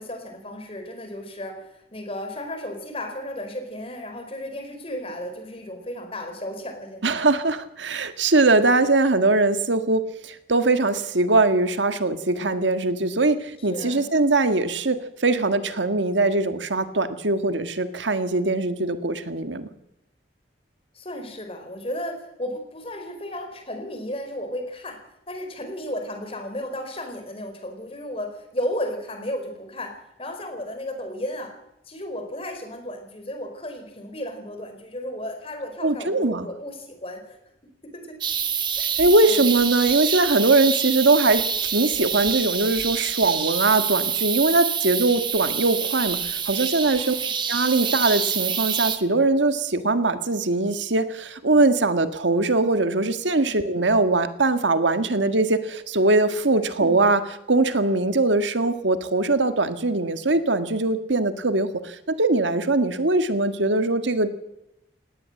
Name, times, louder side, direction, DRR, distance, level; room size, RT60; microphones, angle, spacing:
voice 1, 0.0-7.2 13.6-14.1 20.9-25.0 25.3-31.5 31.9-37.4 37.9-38.2 38.8-38.9 39.2-39.4 46.8-47.3 53.3-53.5 56.5-56.7, left 1 dB, 30° left, 6 dB, 4.5 m, -34 dB
voice 2, 7.0-13.4 13.6-15.0 15.2-19.7 35.8-36.5 39.0-47.1 47.5-64.4, right 2 dB, 90° right, 9 dB, 1.7 m, -21 dB
sound 1, 38.2-49.0, right 7 dB, 25° right, 1.5 m, -26 dB
19.0 x 17.5 x 7.8 m, 0.85 s
head